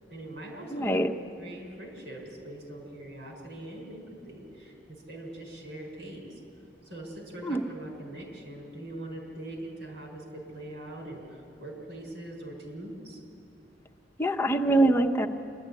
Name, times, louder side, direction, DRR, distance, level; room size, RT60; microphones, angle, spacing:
voice 1, 0.1-1.1 1.4-6.4 6.8-13.2, right 1 dB, 80° right, 1 dB, 5.3 m, -42 dB
voice 2, 0.7-1.1 7.4-7.6 14.2-15.3, right 1 dB, 15° left, 3 dB, 1.0 m, -24 dB
26.0 x 12.5 x 9.8 m, 2.6 s
head